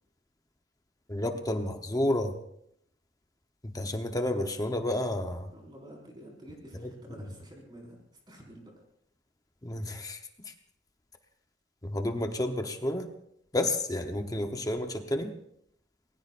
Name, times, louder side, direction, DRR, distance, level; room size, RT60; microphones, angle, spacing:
voice 1, 1.1-2.4 3.6-5.5 6.8-6.9 9.6-10.2 10.4-10.5 11.8-13.1 13.5-15.3, left 1 dB, 20° left, 5 dB, 0.9 m, -30 dB
voice 2, 5.5-8.0 8.3-8.7, right 1 dB, 25° right, -2 dB, 5.1 m, -49 dB
27.5 x 20.5 x 2.6 m, 0.73 s
head